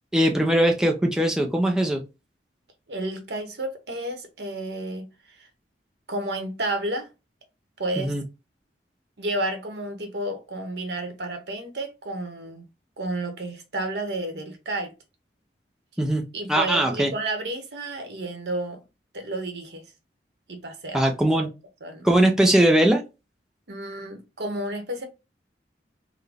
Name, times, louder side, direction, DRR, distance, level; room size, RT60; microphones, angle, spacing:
voice 1, 0.1-2.0 8.0-8.2 16.0-16.2 16.5-17.1 20.9-21.5 22.0-23.0, right 1 dB, 5° right, 0.4 m, -20 dB
voice 2, 2.9-5.5 6.1-7.1 7.8-8.1 9.2-12.6 13.0-14.9 16.3-18.8 19.1-19.8 20.5-21.0 21.3-21.5 21.8-22.1 23.7-25.1, right 1 dB, 70° right, 1.0 m, -31 dB
3.8 x 2.2 x 3.4 m
head